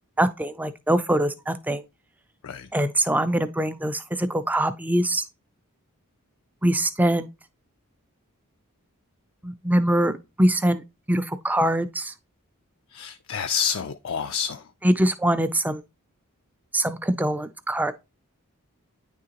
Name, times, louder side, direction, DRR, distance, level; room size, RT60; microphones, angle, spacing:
voice 1, 0.2-1.8 2.7-5.2 6.6-7.3 9.4-10.8 11.1-12.1 14.8-15.8 16.7-17.9, right 1 dB, 5° right, 0.3 m, -23 dB
voice 2, 12.9-14.6, left 7 dB, 60° left, 0.4 m, -28 dB
9.4 x 3.7 x 2.9 m
head